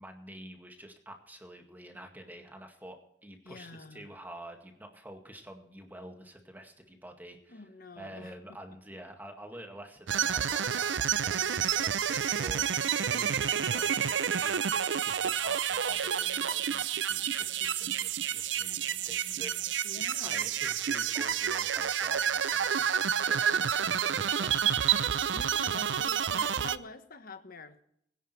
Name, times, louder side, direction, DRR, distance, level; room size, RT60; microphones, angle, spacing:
voice 1, 0.0-7.7 8.0-24.6, right 1 dB, 10° right, 3 dB, 2.0 m, -48 dB
voice 2, 3.4-4.1 7.5-8.3 19.8-20.5 25.3-27.8, left 3 dB, 55° left, 9 dB, 1.3 m, -46 dB
sound 1, 10.1-26.8, right 8 dB, 85° right, 0.6 m, -29 dB
21.5 x 10.5 x 3.3 m, 0.72 s
head